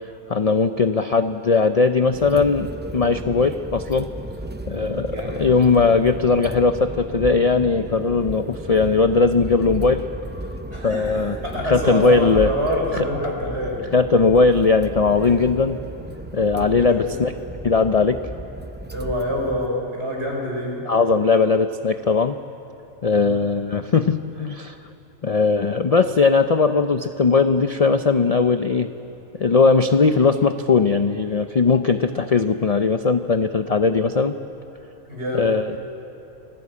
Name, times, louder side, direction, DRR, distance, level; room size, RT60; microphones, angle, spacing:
voice 1, 0.3-4.1 4.7-10.0 10.8-11.4 11.6-12.5 12.9-13.0 13.9-15.8 16.3-17.3 17.6-18.2 20.9-22.4 23.0-24.8 25.2-28.9 29.4-34.3 35.3-35.7, left 4 dB, 50° left, 9 dB, 0.4 m, -19 dB
sound 1, 2.0-19.7, right 1 dB, 15° right, 0.3 m, -34 dB
voice 2, 5.1-5.4 10.7-13.8 16.8-17.1 18.9-20.8 23.1-23.4 35.1-35.5, equal, 50° right, -1 dB, 5.7 m, -26 dB
26.5 x 17.0 x 8.4 m, 2.8 s
omnidirectional pair, 1.4 m